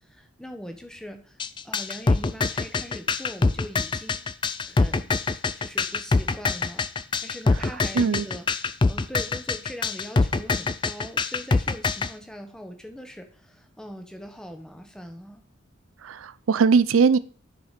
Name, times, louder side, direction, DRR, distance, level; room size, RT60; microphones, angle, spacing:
voice 1, 0.0-1.4 1.6-4.2 4.6-5.1 5.6-6.9 7.2-15.4, equal, 5° left, 1.0 m, -41 dB
sound 1, 1.4-12.1, left 3 dB, 25° left, 0.3 m, -24 dB
voice 2, 7.9-8.3 16.0-17.2, right 5 dB, 85° right, 0.5 m, -20 dB
9.6 x 4.9 x 5.7 m
head